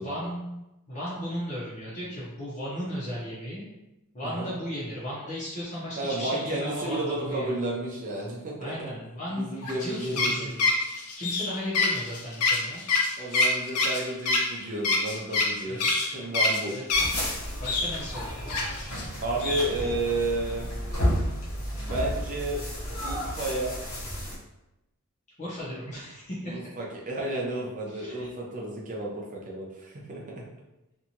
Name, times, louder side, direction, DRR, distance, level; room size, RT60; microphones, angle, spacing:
voice 1, 0.0-3.7 4.1-7.6 8.6-10.7 11.2-12.8 13.2-13.3 15.7-16.0 16.7-17.0 17.6-18.8 25.4-26.7 27.9-28.3, equal, 35° left, -8 dB, 0.7 m, -36 dB
voice 2, 6.0-8.9 9.3-10.5 13.2-16.7 19.2-20.7 21.8-22.6 23.0-23.7 26.4-30.4, right 2 dB, 35° right, -3 dB, 0.6 m, -32 dB
sound 1, 9.6-17.3 17.6-19.0 19.4-19.7, left 3 dB, 85° left, 0.5 m, -26 dB
sound 2, 16.9-24.4, equal, 65° left, 0.9 m, -32 dB
2.7 x 2.4 x 2.8 m, 0.96 s
head